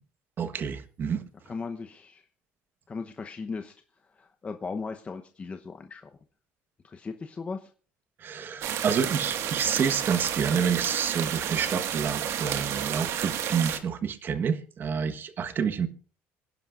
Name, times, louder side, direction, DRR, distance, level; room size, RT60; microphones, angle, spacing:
voice 1, 0.4-1.2 8.2-15.9, right 7 dB, 40° right, 9 dB, 1.3 m, -28 dB
voice 2, 1.5-2.3 2.9-3.7 4.0-6.1 6.8-7.7, left 4 dB, 25° left, 6 dB, 0.9 m, -37 dB
sound 1, 8.6-13.8, right 9 dB, 60° right, 1.8 m, -31 dB
26.5 x 10.5 x 2.5 m, 0.39 s
cardioid pair, 120°, 5 cm